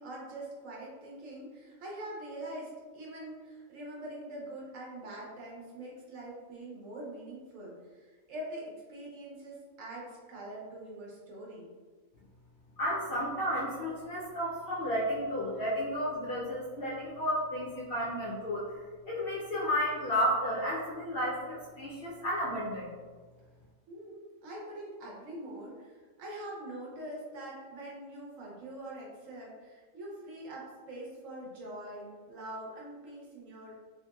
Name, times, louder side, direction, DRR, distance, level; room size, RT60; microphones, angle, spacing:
voice 1, 0.0-11.7 23.9-33.8, right 1 dB, 65° right, -4 dB, 1.1 m, -44 dB
voice 2, 12.8-18.6 19.1-22.9, equal, 60° left, -7 dB, 0.6 m, -32 dB
2.9 x 2.8 x 2.3 m, 1.4 s
omnidirectional pair, 1.5 m